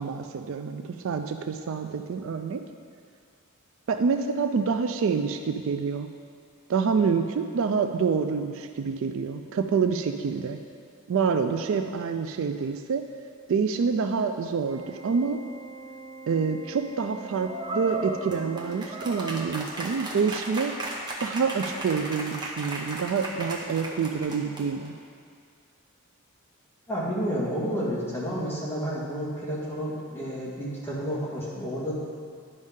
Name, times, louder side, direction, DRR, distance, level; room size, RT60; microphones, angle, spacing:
voice 1, 0.0-2.6 3.9-6.1 6.7-10.6 11.1-13.0 13.5-15.4 16.3-20.7 21.2-24.9, right 5 dB, 60° right, 7 dB, 0.3 m, -27 dB
Organ, 14.7-19.7, right 3 dB, 90° right, 0.7 m, -44 dB
sound 1, 17.4-24.9, right 1 dB, 20° right, 0.8 m, -35 dB
voice 2, 26.9-31.9, equal, 10° left, -8 dB, 1.8 m, -30 dB
11.0 x 5.3 x 3.7 m, 2.2 s
head